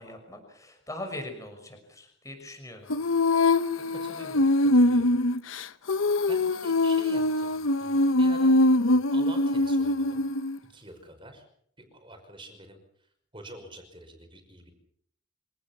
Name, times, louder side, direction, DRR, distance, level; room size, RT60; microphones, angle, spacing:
voice 1, 0.0-2.9, left 1 dB, 15° left, 5 dB, 6.2 m, -41 dB
Female singing, 2.9-10.6, left 2 dB, 80° left, 1.0 m, -23 dB
voice 2, 3.9-5.2 5.5-5.7 6.3-8.6 8.8-10.3 10.6-11.4 11.8-12.8 13.3-14.7, right 1 dB, 25° right, 5 dB, 5.5 m, -47 dB
26.0 x 18.5 x 7.3 m, 0.67 s
head